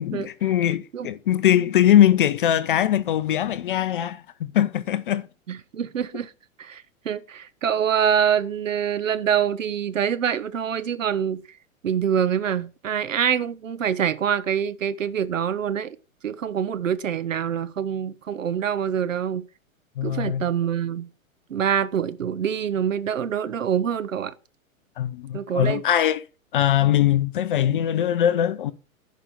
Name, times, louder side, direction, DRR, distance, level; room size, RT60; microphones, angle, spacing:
voice 1, 0.0-5.3 20.0-20.5 25.0-26.2 26.5-28.7, left 11 dB, 40° left, 0.5 m, -21 dB
voice 2, 5.5-6.3 6.6-11.4 11.8-16.0 16.2-19.4 20.0-21.1 21.5-24.3 25.3-25.8, right 8 dB, 65° right, 0.9 m, -25 dB
11.0 x 5.2 x 7.0 m
figure-of-eight pair, 105°, 42 cm